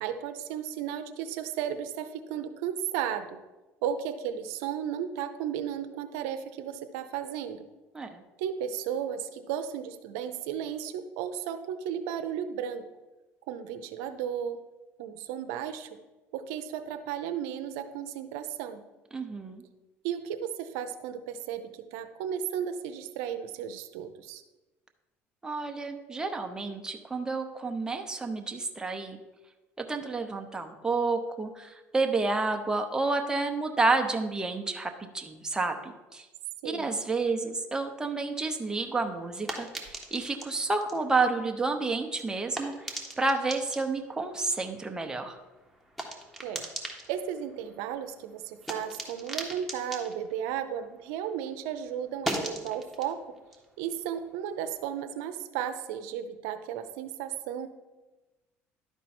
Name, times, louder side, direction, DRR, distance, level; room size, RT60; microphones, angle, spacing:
voice 1, 0.0-3.4 3.8-7.6 8.4-12.8 13.5-14.6 15.0-15.9 16.3-18.8 20.0-24.4 36.6-36.9 46.4-46.7 47.1-53.2 53.8-57.7, right 9 dB, 90° right, 7 dB, 0.6 m, -34 dB
voice 2, 19.1-19.6 25.4-29.2 29.8-36.3 36.6-45.4, right 3 dB, 15° right, 4 dB, 0.8 m, -30 dB
sound 1, 38.6-51.4 51.7-54.9, right 1 dB, 5° left, 1.4 m, -41 dB
11.5 x 4.5 x 4.3 m, 1.1 s
supercardioid pair, 105°, 5 cm